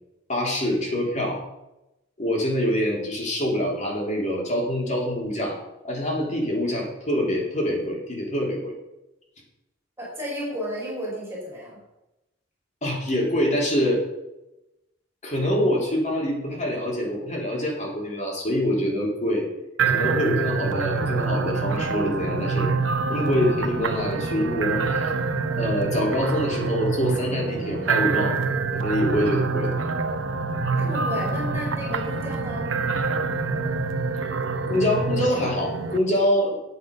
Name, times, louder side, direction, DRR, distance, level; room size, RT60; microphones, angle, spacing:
voice 1, 0.3-1.4 2.2-5.6 5.8-8.7 12.8-14.0 15.2-19.5 19.9-22.7 23.1-25.1 25.6-28.4 28.7-29.8 34.7-36.5, equal, 40° left, -2 dB, 3.6 m, -25 dB
voice 2, 10.0-11.8 30.8-32.7, equal, 15° right, -5 dB, 4.8 m, -32 dB
sound 1, 19.8-36.0, right 4 dB, 90° right, 0.9 m, -26 dB
9.4 x 8.4 x 5.5 m, 0.93 s
head